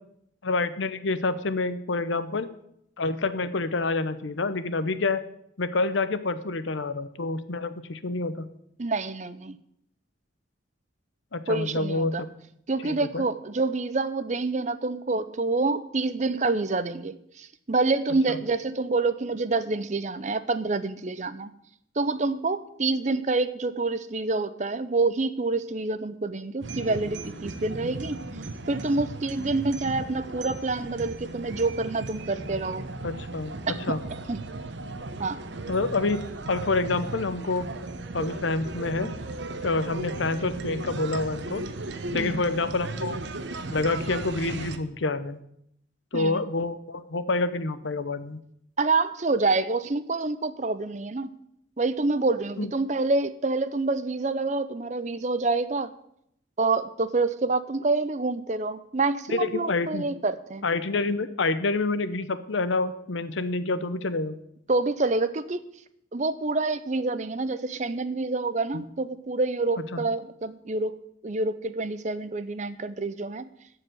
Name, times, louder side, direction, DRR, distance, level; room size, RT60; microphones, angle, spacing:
voice 1, 0.4-2.5 3.0-5.2 5.6-8.5 11.3-12.3 12.8-13.3 18.3-18.4 33.0-34.0 35.7-37.7 38.1-39.1 39.6-41.6 42.1-43.2 43.7-45.4 46.1-48.4 52.6-52.7 59.3-60.1 60.6-64.4 68.7-68.8 69.9-70.1, left 3 dB, 75° left, 12 dB, 0.8 m, -28 dB
voice 2, 8.8-9.6 11.5-12.2 12.7-21.5 22.0-28.2 28.7-32.8 33.7-34.0 34.3-34.4 35.2-35.4 42.1-42.4 46.1-46.4 48.8-51.3 51.8-55.9 56.6-60.6 64.7-65.6 66.1-73.5, right 3 dB, 35° right, 13 dB, 0.6 m, -27 dB
sound 1, 26.6-44.8, right 2 dB, 65° right, 0.9 m, -36 dB
14.0 x 4.9 x 9.1 m, 0.74 s
head